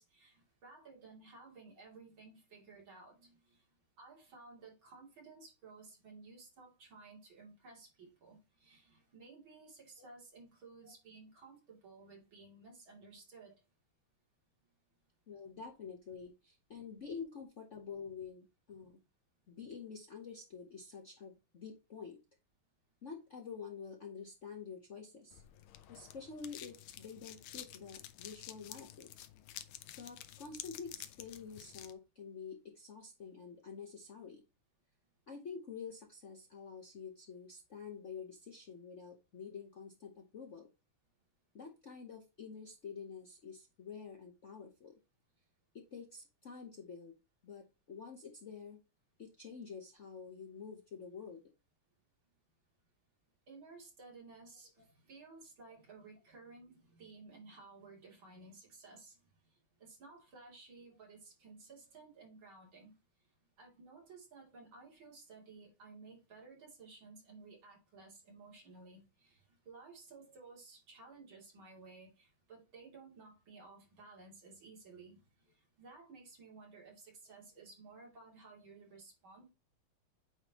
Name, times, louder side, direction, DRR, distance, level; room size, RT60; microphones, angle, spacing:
voice 1, 0.0-3.7 4.0-13.6 53.5-59.3 59.8-62.9 63.6-79.5, right 3 dB, 65° right, 3.6 m, -56 dB
voice 2, 15.3-19.0 19.5-22.2 23.0-25.4 25.9-29.1 30.0-34.4 35.3-40.7 41.5-45.0 45.7-47.1 47.4-48.8 49.2-51.4 54.8-54.9, left 6 dB, 50° left, 0.9 m, -48 dB
sound 1, 25.3-31.9, left 12 dB, 75° left, 1.5 m, -51 dB
8.8 x 3.7 x 2.9 m
omnidirectional pair, 2.4 m